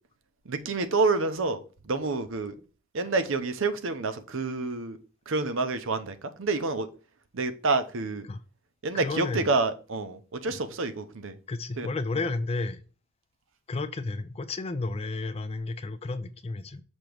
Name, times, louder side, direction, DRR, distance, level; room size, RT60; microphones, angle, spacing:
voice 1, 0.5-2.5 2.9-5.0 5.3-6.9 7.3-8.3 8.8-11.4 11.8-11.9, right 3 dB, 60° right, 0.7 m, -28 dB
voice 2, 8.9-9.5 10.5-10.6 11.5-12.8 13.7-16.8, left 3 dB, 30° left, 0.4 m, -32 dB
6.2 x 2.9 x 5.1 m
head